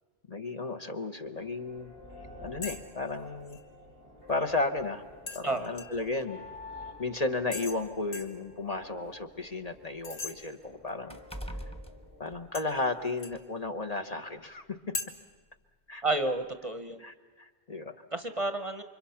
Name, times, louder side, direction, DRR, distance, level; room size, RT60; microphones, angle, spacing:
voice 1, 0.3-1.9 2.4-3.6 4.3-5.0 5.3-6.4 7.0-11.2 12.2-14.9 15.9-16.0 17.0-18.0, left 3 dB, 35° left, 6 dB, 1.0 m, -34 dB
sound 1, 1.4-12.7, left 2 dB, 60° left, 4.0 m, -50 dB
sound 2, 2.6-2.8 3.1-3.6 5.3-6.1 7.5-7.8 8.1-8.4 10.0-10.3 12.5-13.4 14.9-15.1, left 3 dB, 80° left, 1.9 m, -39 dB
sound 3, 4.3-4.5 5.5-5.6 6.1-6.2 7.1-9.1 9.5-12.9 13.3-13.5, equal, 5° left, 1.1 m, -45 dB
voice 2, 16.0-17.0 18.1-18.8, right 2 dB, 35° right, 8 dB, 0.9 m, -30 dB
29.0 x 25.0 x 5.7 m, 1.3 s
omnidirectional pair, 1.1 m